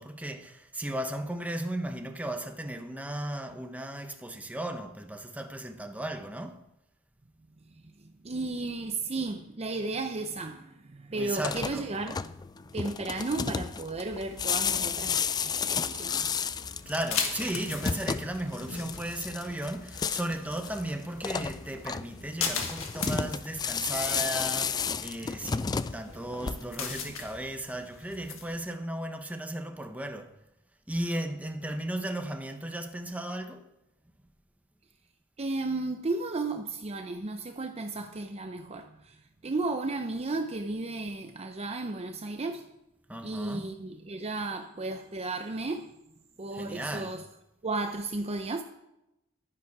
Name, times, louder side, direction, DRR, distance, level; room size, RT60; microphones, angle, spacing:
voice 1, 0.0-6.6 11.2-11.9 16.9-30.3 30.9-33.7 43.1-43.7 46.5-47.1, right 1 dB, 5° right, 0.9 m, -35 dB
voice 2, 7.8-12.4 12.7-16.4 35.4-42.7 43.2-46.0 46.4-47.3 47.6-48.6, right 3 dB, 30° right, 0.6 m, -34 dB
sound 1, 11.3-26.9, left 6 dB, 20° left, 0.3 m, -33 dB
sound 2, 13.9-28.6, left 5 dB, 80° left, 1.7 m, -40 dB
11.0 x 10.5 x 4.8 m
head